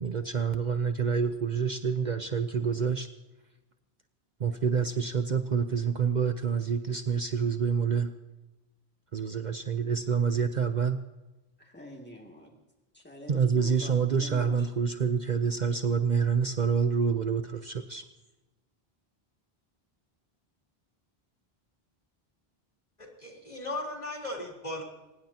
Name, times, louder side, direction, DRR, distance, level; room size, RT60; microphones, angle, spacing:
voice 1, 0.0-3.1 4.4-8.1 9.1-11.0 13.3-18.0, right 6 dB, 50° right, 7 dB, 0.9 m, -27 dB
voice 2, 11.6-12.6 12.9-14.7, equal, 10° left, 0 dB, 2.5 m, -45 dB
voice 3, 23.2-24.8, left 1 dB, 40° left, -1 dB, 3.9 m, -36 dB
23.5 x 20.0 x 2.9 m, 1.0 s
omnidirectional pair, 1.0 m